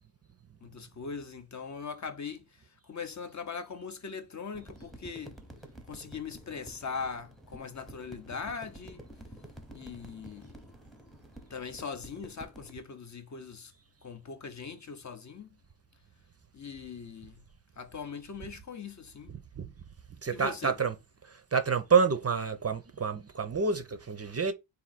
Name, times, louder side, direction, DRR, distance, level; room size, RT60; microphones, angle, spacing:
voice 1, 0.6-5.3 5.9-9.0 9.7-10.6 11.5-13.7 14.0-15.6 16.5-17.5 17.8-19.3 20.3-20.8, left 5 dB, 40° left, 0.5 m, -41 dB
sound 1, 4.5-12.7, right 1 dB, ahead, 0.7 m, -50 dB
voice 2, 20.2-20.9 21.3-24.5, right 5 dB, 35° right, 0.5 m, -28 dB
4.3 x 2.7 x 3.9 m
wide cardioid pair, 155°, 48 cm